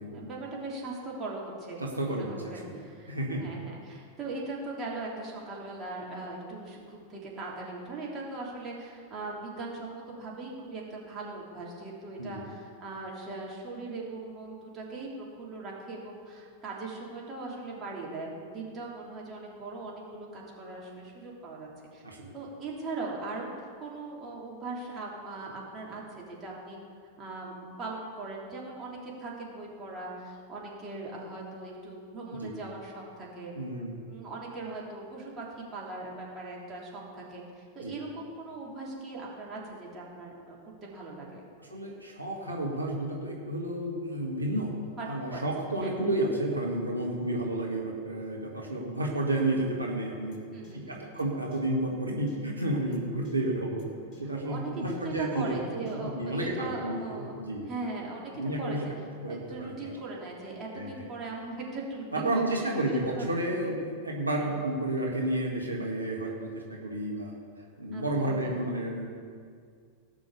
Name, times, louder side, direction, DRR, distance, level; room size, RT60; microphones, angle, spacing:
voice 1, 0.1-3.1 3.3-22.0 22.3-23.5 23.8-26.8 27.2-33.5 34.1-41.4 45.0-45.4 45.8-45.9 50.5-51.2 54.4-57.3 57.7-58.9 59.3-63.3 64.4-64.5 67.9-68.6, right 3 dB, 25° right, -4 dB, 3.4 m, -39 dB
voice 2, 1.8-2.8 3.1-3.5 12.2-12.4 22.0-22.3 32.3-32.6 33.5-34.0 37.8-37.9 41.6-44.7 45.1-50.5 50.7-53.8 54.2-55.5 55.9-57.7 58.3-58.9 59.2-59.9 60.7-60.9 62.1-67.3 67.8-69.1, right 1 dB, 85° right, -2 dB, 1.7 m, -31 dB
sound 1, 50.3-50.4 50.6-50.7 51.2-51.3 51.5-51.6 52.3-52.4 52.9-53.0 53.2-53.3 53.8-53.9 54.1-54.2 54.9-55.0 55.8-55.9, left 4 dB, 35° left, 2.4 m, -56 dB
17.0 x 6.3 x 6.9 m, 2.1 s
figure-of-eight pair, 90°, 0 cm